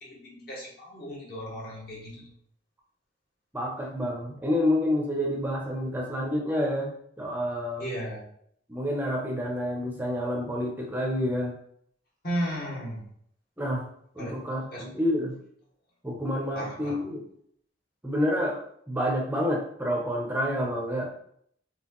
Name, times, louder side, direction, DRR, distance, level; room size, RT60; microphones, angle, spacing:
voice 1, 0.0-2.3 7.8-8.3 12.2-13.1 14.2-14.3 14.7-14.8 16.5-17.0, equal, 55° left, -4 dB, 1.4 m, -35 dB
voice 2, 3.5-7.9 8.7-11.5 13.6-13.8 14.1-15.3 16.0-17.2 18.0-21.1, equal, 10° right, -1 dB, 0.6 m, -28 dB
4.4 x 3.1 x 3.0 m, 0.67 s
head